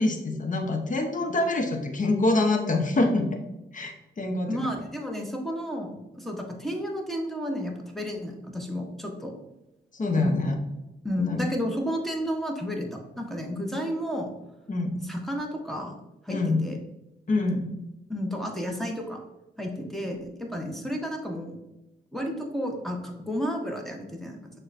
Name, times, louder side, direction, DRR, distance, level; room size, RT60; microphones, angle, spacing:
voice 1, 0.0-3.2 3.7-4.5 9.9-10.5 11.2-11.4 14.7-15.0 16.3-16.6 17.3-17.7, left 2 dB, 40° left, 4 dB, 0.7 m, -25 dB
voice 2, 4.5-9.3 10.2-10.6 11.0-14.3 15.0-15.9 16.2-16.8 18.1-19.2 19.6-21.6 22.1-24.5, equal, ahead, 1 dB, 0.9 m, -32 dB
6.5 x 2.2 x 2.5 m, 0.94 s
cardioid pair, 55°, 19 cm